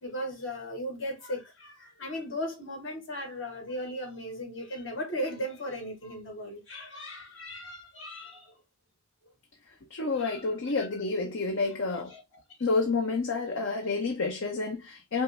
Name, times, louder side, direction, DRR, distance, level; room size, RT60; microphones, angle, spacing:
voice 1, 0.0-8.6 10.2-10.9 11.8-12.2, equal, 65° left, 1.6 m, -37 dB
voice 2, 9.9-12.1 12.6-15.2, left 3 dB, 85° left, 0.8 m, -29 dB
5.5 x 2.0 x 3.3 m
head